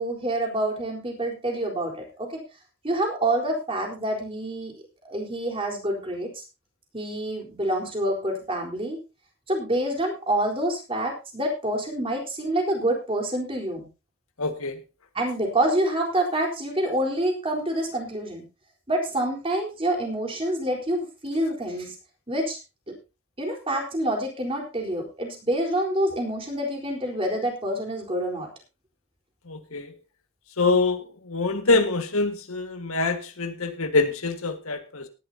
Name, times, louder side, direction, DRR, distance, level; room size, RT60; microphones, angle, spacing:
voice 1, 0.0-2.4 2.8-4.7 5.0-6.3 6.9-9.0 9.5-13.9 15.1-18.4 18.9-22.0 22.3-22.6 22.9-23.0 23.4-28.5, right 1 dB, 25° right, 1 dB, 4.0 m, -27 dB
voice 2, 14.4-14.8 29.5-29.9 30.6-35.1, left 3 dB, 80° left, 7 dB, 1.8 m, -25 dB
18.0 x 11.5 x 2.8 m, 0.29 s
head